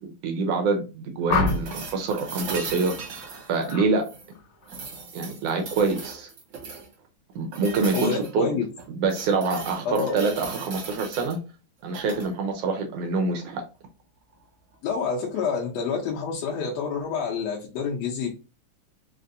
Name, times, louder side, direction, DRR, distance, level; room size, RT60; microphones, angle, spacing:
voice 1, 0.0-3.0 3.5-4.1 5.1-6.3 7.3-8.6 9.0-11.4 11.8-13.6, right 4 dB, 75° right, 4 dB, 1.5 m, -26 dB
sound 1, 1.3-1.9 3.6-3.9 4.3-4.7, left 3 dB, 40° left, 2.2 m, -27 dB
sound 2, 1.5-4.3 4.7-6.9 7.5-8.3 8.8-11.3 11.8-12.3 14.3-14.4, right 4 dB, 60° right, 1.3 m, -38 dB
voice 2, 7.9-8.7 9.9-10.2 14.8-18.3, left 5 dB, 70° left, -2 dB, 1.8 m, -28 dB
5.0 x 2.6 x 2.6 m, 0.30 s
omnidirectional pair, 3.4 m